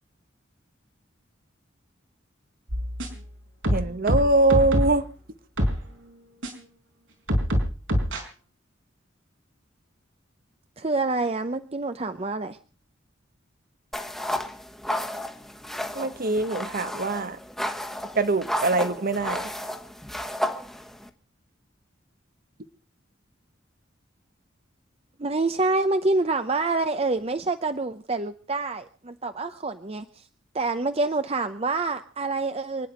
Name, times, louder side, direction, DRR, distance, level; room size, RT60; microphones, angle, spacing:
sound 1, 2.7-3.3 3.6-5.0 5.6-5.8 6.4-6.5 7.3-8.2, equal, 85° right, 4.5 m, -24 dB
voice 1, 3.7-5.1 15.9-17.4 18.1-19.5, right 2 dB, 50° right, 1.0 m, -23 dB
voice 2, 10.8-12.6 25.2-30.1 30.5-32.9, right 3 dB, 30° right, 0.7 m, -27 dB
sound 2, 13.9-21.1, left 1 dB, ahead, 1.3 m, -32 dB
27.5 x 9.9 x 5.0 m
head